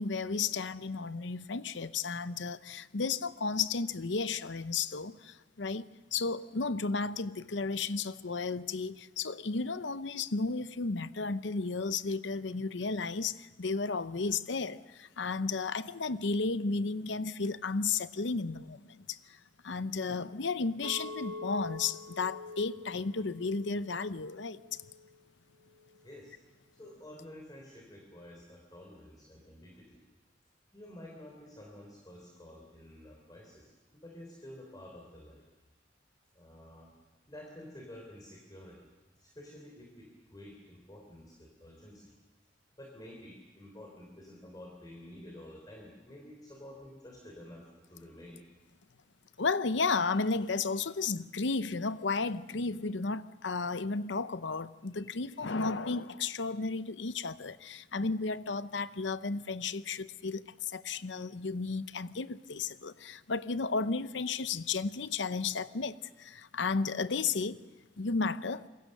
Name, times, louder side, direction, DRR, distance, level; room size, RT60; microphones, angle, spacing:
voice 1, 0.0-19.4 19.6-24.8 49.4-67.6 68.0-68.7, left 4 dB, 70° left, 0.8 m, -33 dB
Chink clink, 20.8-25.1 25.6-26.0, left 2 dB, 90° right, 4.1 m, -46 dB
voice 2, 26.0-26.3 26.7-30.0 30.7-33.7 33.9-35.4 36.4-36.9 37.3-38.9 39.2-42.1 42.8-48.4, left 1 dB, 20° left, 3.5 m, -50 dB
26.5 x 22.5 x 6.7 m
head